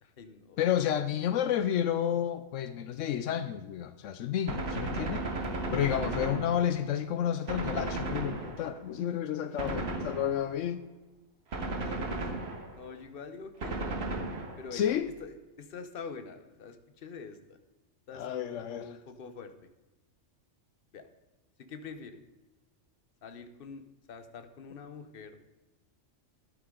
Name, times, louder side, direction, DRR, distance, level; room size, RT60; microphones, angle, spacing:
voice 1, 0.0-0.6 6.0-6.3 9.6-9.8 11.8-12.3 12.7-14.0 14.6-14.9 15.2-17.6 18.1-19.5 20.9-21.1 21.6-22.2 23.2-25.4, left 5 dB, 50° left, 1.0 m, -45 dB
voice 2, 0.6-5.2 5.7-10.8 14.7-15.1 18.1-18.9, left 10 dB, 80° left, 0.9 m, -31 dB
Gunshot gunfire, 4.5-7.0 7.5-8.9 9.6-10.6 11.5-12.9 13.6-14.8, right 2 dB, 55° right, 1.6 m, -35 dB
12.0 x 8.6 x 3.8 m
omnidirectional pair, 1.3 m